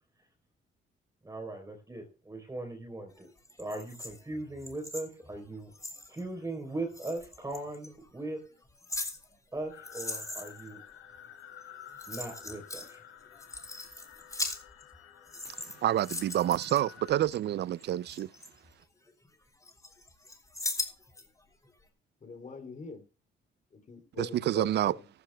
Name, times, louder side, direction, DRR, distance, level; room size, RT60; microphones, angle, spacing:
voice 1, 1.2-3.3 3.6-5.7 6.1-8.4 9.5-10.8 12.1-13.0, right 2 dB, 15° right, 3.7 m, -39 dB
sound 1, 3.4-6.2 6.9-7.9 8.5-10.7 11.6-11.7 11.9-12.9 13.3-15.0 15.3-17.4 17.8-19.3 19.6-21.3 21.6-21.7, left 2 dB, 15° left, 3.2 m, -40 dB
sound 2, 9.7-17.1, left 9 dB, 85° left, 1.7 m, -52 dB
voice 2, 15.8-18.3 24.2-24.9, right 12 dB, 60° right, 0.4 m, -28 dB
voice 3, 22.2-23.0 23.7-25.0, left 4 dB, 40° left, 3.1 m, -43 dB
15.0 x 14.0 x 2.3 m
cardioid pair, 90°, 20 cm